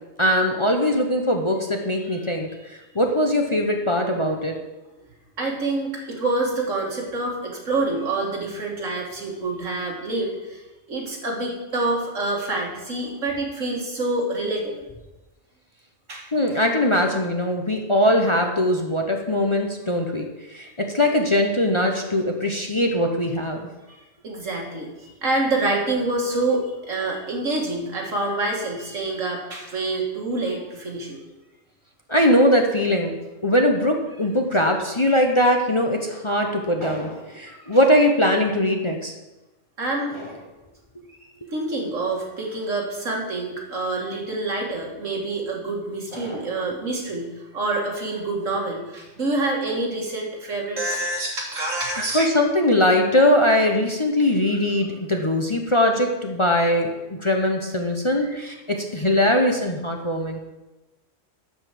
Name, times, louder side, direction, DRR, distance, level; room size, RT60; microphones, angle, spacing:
voice 1, 0.2-4.5 16.3-20.3 20.5-23.7 32.1-33.2 33.4-39.1 40.1-40.3 46.1-46.5 52.1-60.4, left 1 dB, 25° left, 2 dB, 0.9 m, -21 dB
voice 2, 5.4-10.6 10.9-14.9 16.1-16.3 23.9-24.0 24.2-31.2 37.6-37.8 39.8-40.3 41.5-52.3 58.2-58.4, right 2 dB, 75° right, -1 dB, 2.6 m, -27 dB
12.0 x 5.3 x 7.6 m, 1.1 s
omnidirectional pair, 1.3 m